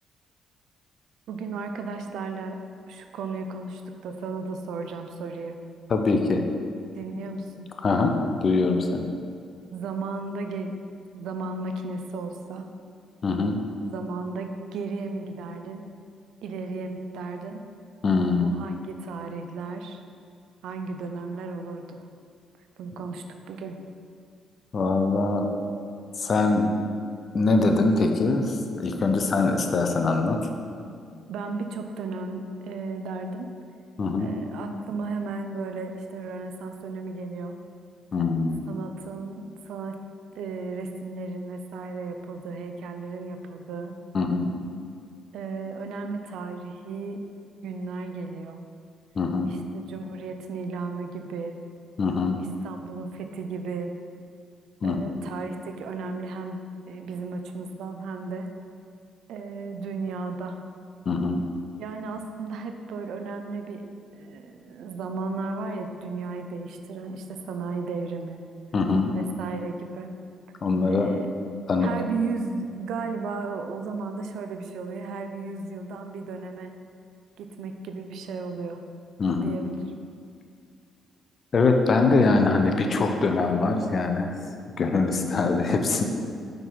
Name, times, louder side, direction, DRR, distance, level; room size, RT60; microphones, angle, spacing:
voice 1, 1.3-2.6 2.9-5.6 7.0-7.7 9.7-12.7 13.9-15.9 16.4-17.7 18.4-20.0 20.6-22.0 22.8-23.8 31.3-33.5 34.2-37.6 38.7-40.0 40.3-44.0 45.3-47.2 47.6-48.7 49.5-51.6 52.4-53.9 54.8-58.5 59.3-60.6 61.8-63.8 64.1-68.4 69.1-70.1 70.9-71.3 71.8-76.7 77.4-78.8 79.4-79.9, right 3 dB, 80° right, 6 dB, 0.5 m, -34 dB
voice 2, 5.9-6.4 7.8-9.1 13.2-13.6 18.0-18.5 24.7-25.6 26.2-26.8 27.3-30.5 34.0-34.3 38.1-38.7 44.1-44.5 49.1-49.5 52.0-52.4 54.8-55.0 61.1-61.4 68.7-69.1 70.6-71.2 71.7-71.9 79.2-79.6 81.5-84.3 84.8-86.0, left 3 dB, 45° left, 4 dB, 0.7 m, -23 dB
5.7 x 5.2 x 4.7 m, 2.3 s
cardioid pair, 90°, 0 cm